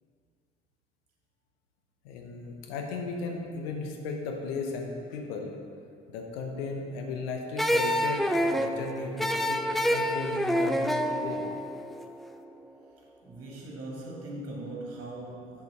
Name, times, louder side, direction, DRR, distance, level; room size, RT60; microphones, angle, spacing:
voice 1, 2.0-5.5 6.1-11.4, left 4 dB, 70° left, 2 dB, 1.0 m, -35 dB
sound 1, 7.6-12.7, equal, ahead, 0.4 m, -28 dB
voice 2, 13.2-15.6, right 2 dB, 50° right, -3 dB, 2.0 m, -40 dB
6.5 x 5.4 x 5.2 m, 2.3 s
figure-of-eight pair, 50°, 31 cm